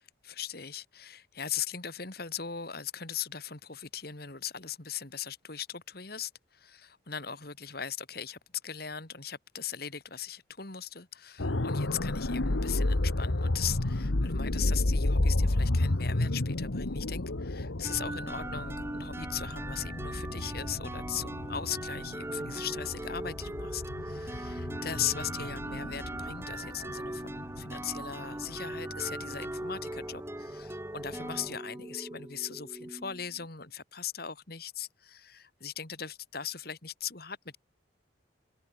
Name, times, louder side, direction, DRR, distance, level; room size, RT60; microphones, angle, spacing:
voice 1, 0.2-37.6, left 8 dB, 50° left, 2.4 m, -39 dB
sound 1, 11.4-29.3 29.6-29.8, left 2 dB, 85° left, 1.4 m, -32 dB
sound 2, 17.8-33.5, right 1 dB, 15° right, 1.1 m, -40 dB
head